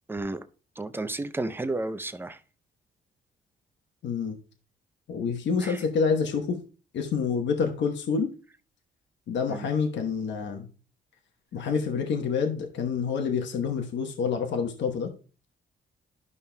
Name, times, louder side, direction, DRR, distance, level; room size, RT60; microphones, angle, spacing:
voice 1, 0.1-0.4 0.8-2.4 5.6-5.8 9.5-9.7, right 2 dB, 10° right, 0.5 m, -32 dB
voice 2, 4.0-4.4 5.1-6.6 6.9-8.3 9.3-10.7 11.5-15.1, left 5 dB, 65° left, 1.1 m, -27 dB
12.0 x 5.5 x 2.2 m
cardioid pair, 90°, 20 cm